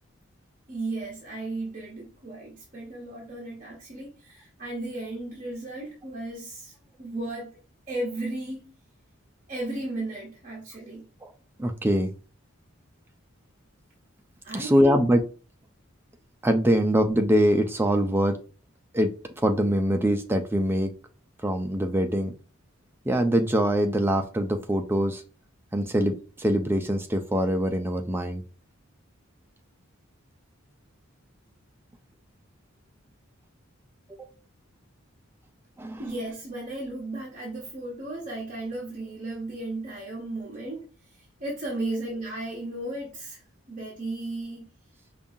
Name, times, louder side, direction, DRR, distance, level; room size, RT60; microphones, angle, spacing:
voice 1, 0.7-7.5 7.9-8.7 9.5-11.1 14.4-15.0 36.0-43.4 43.7-44.7, right 2 dB, 35° right, -4 dB, 0.8 m, -35 dB
voice 2, 11.6-12.1 14.5-15.2 16.4-18.4 18.9-19.1 19.4-20.9 21.4-22.3 23.1-25.2 25.7-28.4 34.1-34.2 35.8-36.0, equal, 10° right, 6 dB, 0.3 m, -23 dB
5.2 x 2.3 x 2.6 m, 0.36 s
head